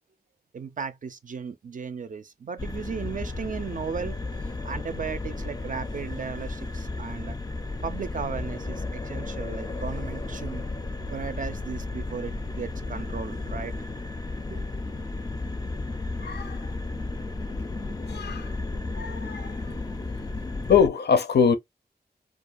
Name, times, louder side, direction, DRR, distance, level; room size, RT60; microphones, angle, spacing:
voice 1, 0.5-7.4 7.8-10.6 11.1-13.7 14.5-14.7, right 6 dB, 50° right, 0.4 m, -36 dB
sound 1, 2.6-20.9, left 2 dB, 20° left, 0.4 m, -33 dB
voice 2, 16.2-16.6 18.1-18.5 18.9-19.6 20.7-21.6, left 6 dB, 80° left, 0.5 m, -23 dB
2.4 x 2.2 x 2.4 m
wide cardioid pair, 70°, 17 cm